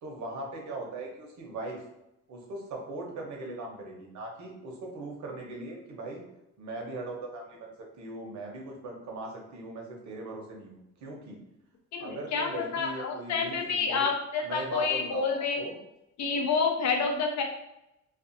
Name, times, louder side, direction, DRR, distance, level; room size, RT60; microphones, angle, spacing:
voice 1, 0.0-1.8 2.3-6.2 6.6-11.4 12.0-14.1 14.4-15.8, right 2 dB, 70° right, 0 dB, 0.8 m, -39 dB
voice 2, 11.9-15.6 16.2-17.4, left 5 dB, 65° left, 3 dB, 0.6 m, -28 dB
2.5 x 2.4 x 2.5 m, 0.88 s
cardioid pair, 90°, 30 cm